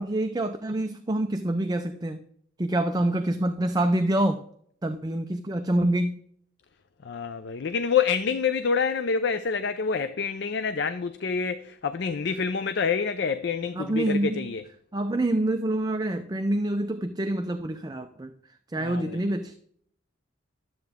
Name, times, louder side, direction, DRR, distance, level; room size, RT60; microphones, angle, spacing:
voice 1, 0.0-2.2 2.6-4.4 4.8-6.2 13.7-14.5 14.9-18.3 18.7-19.6, right 1 dB, 20° right, 0.5 m, -26 dB
voice 2, 7.0-14.6 18.8-19.2, left 5 dB, 60° left, 0.5 m, -27 dB
12.0 x 7.8 x 3.6 m
head